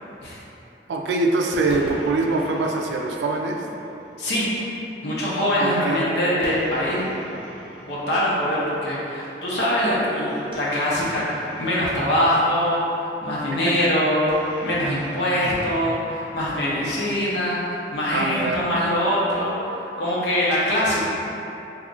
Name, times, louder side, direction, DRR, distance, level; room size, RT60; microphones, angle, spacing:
voice 1, 0.9-3.6 5.6-6.0 13.8-13.9 18.1-18.6, right 3 dB, 90° right, 2 dB, 0.3 m, -23 dB
sound 1, 1.5-4.2 6.4-8.8 10.4-12.9 14.3-16.7, equal, 30° right, 0.6 m, -40 dB
voice 2, 4.2-4.7 5.0-7.0 7.8-21.0, equal, 85° left, -7 dB, 0.8 m, -23 dB
2.7 x 2.4 x 3.7 m, 2.9 s
head